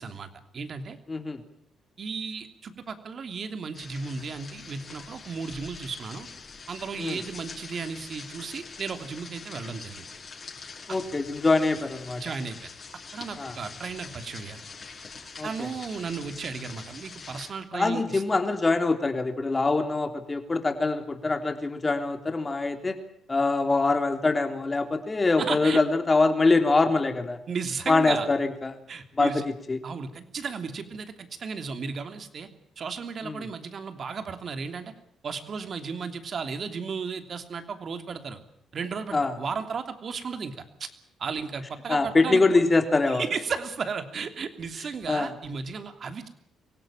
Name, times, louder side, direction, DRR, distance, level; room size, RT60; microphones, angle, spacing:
voice 1, 0.0-1.0 2.0-6.3 6.7-10.1 12.2-12.7 13.1-14.6 15.4-18.2 25.4-25.8 27.5-28.3 28.9-29.4 29.8-32.5 32.8-34.9 35.2-38.4 38.7-40.9 41.2-42.4 43.1-46.3, right 5 dB, 50° right, 8 dB, 3.0 m, -34 dB
voice 2, 1.1-1.4 7.0-7.2 10.9-12.2 13.4-13.5 15.4-15.7 17.7-23.0 23.3-27.4 27.9-28.7 29.2-29.3 29.7-29.8 33.2-33.4 39.1-39.3 41.9-43.2 45.1-45.3, left 3 dB, 25° left, 6 dB, 3.5 m, -24 dB
sound 1, 3.7-17.5, left 5 dB, 40° left, 6.7 m, -44 dB
24.5 x 17.5 x 8.9 m, 0.68 s
cardioid pair, 90°, 0 cm